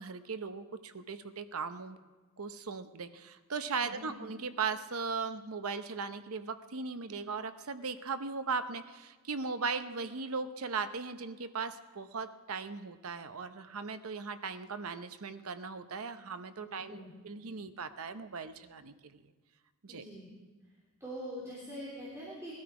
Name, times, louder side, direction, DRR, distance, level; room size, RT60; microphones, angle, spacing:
voice 1, 0.0-2.0 2.4-17.0 17.2-19.3 19.8-20.0, right 5 dB, 70° right, 10 dB, 0.8 m, -38 dB
voice 2, 3.8-4.1 16.6-17.1 19.9-20.3 21.0-22.5, equal, 15° right, -7 dB, 3.4 m, -44 dB
20.5 x 12.5 x 4.8 m, 1.3 s
head